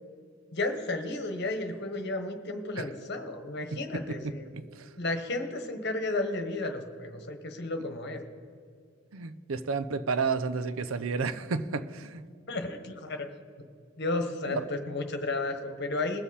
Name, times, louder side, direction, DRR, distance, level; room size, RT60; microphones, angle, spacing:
voice 1, 0.5-4.5 5.0-8.2 12.5-13.3 13.6-13.7 14.0-16.2, left 2 dB, 55° left, 1.3 m, -33 dB
voice 2, 4.1-4.9 9.1-12.3 14.5-14.6, right 4 dB, 90° right, 0.6 m, -32 dB
21.0 x 7.2 x 4.2 m
head